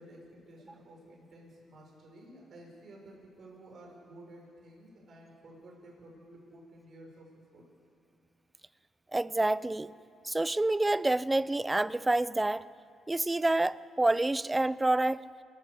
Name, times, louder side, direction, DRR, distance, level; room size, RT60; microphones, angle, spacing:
voice 1, 0.0-7.6, right 1 dB, 55° right, 6.7 m, -52 dB
voice 2, 9.1-9.9 10.2-12.7 13.1-15.3, right 2 dB, 15° right, 0.5 m, -28 dB
26.5 x 17.5 x 7.0 m
cardioid pair, 90°, 0 cm